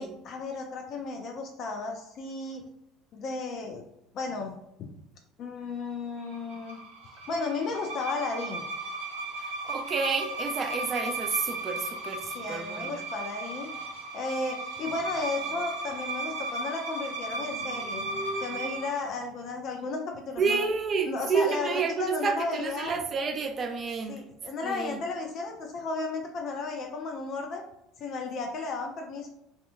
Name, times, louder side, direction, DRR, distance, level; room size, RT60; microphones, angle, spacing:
voice 1, 0.0-2.7 3.1-3.8 4.1-4.5 4.8-4.9 5.4-6.8 7.3-8.6 12.2-13.7 14.1-18.0 18.4-20.6 21.1-23.0 24.1-27.6 28.0-29.3, left 3 dB, 50° left, 0.3 m, -34 dB
sound 1, 6.3-19.0, right 2 dB, 75° right, 0.6 m, -36 dB
voice 2, 9.6-13.0 20.4-24.2 24.6-25.0, right 5 dB, 40° right, 0.4 m, -30 dB
sound 2, 11.0-14.2 14.7-19.9, right 1 dB, 30° left, 1.2 m, -47 dB
2.7 x 2.1 x 2.4 m
hypercardioid pair, 65°, 0 cm